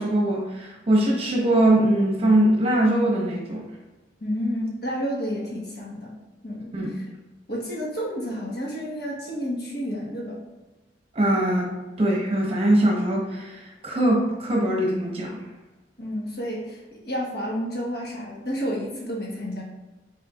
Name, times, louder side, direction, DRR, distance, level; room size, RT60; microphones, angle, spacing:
voice 1, 0.0-3.6 6.7-6.9 11.1-11.7 12.0-15.4, right 1 dB, 35° right, -2 dB, 1.0 m, -22 dB
voice 2, 4.2-6.1 6.4-7.0 7.5-10.4 16.0-19.6, equal, 65° left, -4 dB, 1.4 m, -30 dB
5.6 x 3.7 x 2.5 m, 1.1 s
head